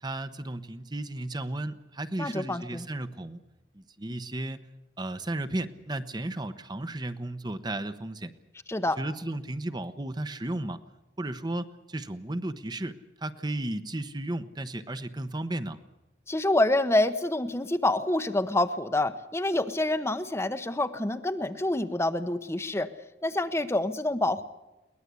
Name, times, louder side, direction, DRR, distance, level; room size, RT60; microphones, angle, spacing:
voice 1, 0.0-3.4 3.7-4.6 5.0-8.3 9.0-10.8 11.2-15.8, right 1 dB, 25° right, 11 dB, 0.9 m, -34 dB
voice 2, 2.2-2.9 8.7-9.0 16.3-22.9 23.2-24.4, left 1 dB, 15° left, 10 dB, 0.9 m, -27 dB
22.5 x 19.0 x 8.3 m, 1.0 s
head